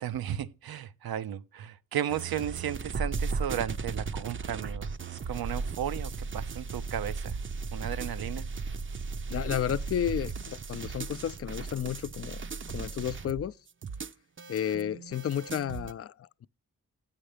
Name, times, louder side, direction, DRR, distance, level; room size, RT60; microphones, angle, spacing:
voice 1, 0.0-7.4 7.7-8.5, right 10 dB, 85° right, 0.6 m, -35 dB
sound 1, 2.1-15.9, right 4 dB, 35° right, 0.5 m, -36 dB
voice 2, 9.3-12.4 12.7-13.6 14.5-16.5, left 9 dB, 40° left, 0.4 m, -32 dB
9.0 x 5.7 x 5.0 m
cardioid pair, 55°, 36 cm